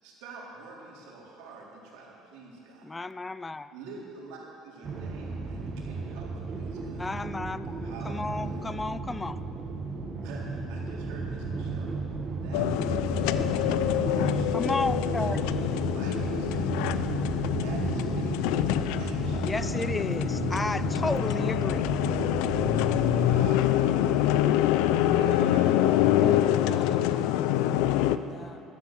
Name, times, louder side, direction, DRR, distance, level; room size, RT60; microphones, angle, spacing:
voice 1, 0.0-2.9 3.7-7.1 7.8-8.6 10.2-11.9 12.4-13.4 13.7-14.6 15.0-15.6 15.9-19.5 23.2-26.4, right 3 dB, 85° right, -3 dB, 3.9 m, -46 dB
voice 2, 2.8-3.7 7.0-9.4 14.5-15.4 19.4-21.9, left 3 dB, 15° left, 15 dB, 0.3 m, -32 dB
sound 1, 4.8-23.6, right 3 dB, 35° right, 1.4 m, -33 dB
sound 2, 12.5-28.2, left 12 dB, 85° left, 0.5 m, -26 dB
voice 3, 26.2-28.6, left 4 dB, 30° left, 8 dB, 1.0 m, -47 dB
12.5 x 12.5 x 7.7 m, 2.7 s
cardioid pair, 130°, 0 cm